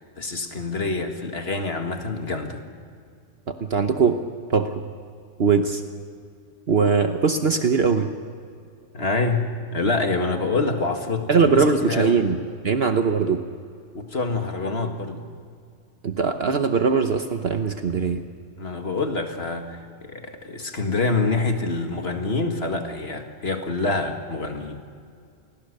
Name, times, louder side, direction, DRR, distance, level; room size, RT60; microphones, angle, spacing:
voice 1, 0.2-2.6 8.9-12.3 13.9-15.2 18.6-19.8 20.1-24.8, left 3 dB, 55° left, 5 dB, 2.1 m, -26 dB
voice 2, 3.5-4.2 4.5-4.8 5.4-5.8 6.7-8.1 11.3-12.4 12.6-13.4 16.0-18.2, right 5 dB, 55° right, 7 dB, 1.2 m, -21 dB
28.0 x 21.0 x 6.7 m, 2.3 s
omnidirectional pair, 1.3 m